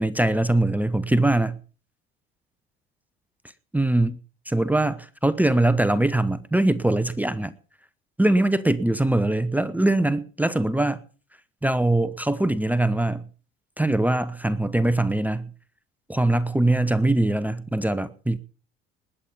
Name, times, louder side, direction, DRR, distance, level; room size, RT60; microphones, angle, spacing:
voice 1, 0.0-1.6 3.7-4.2 4.5-7.5 8.2-11.0 11.6-13.3 13.8-15.5 16.1-18.4, right 1 dB, 5° right, 1.0 m, -22 dB
20.0 x 8.6 x 5.3 m
figure-of-eight pair, 60°, 30 cm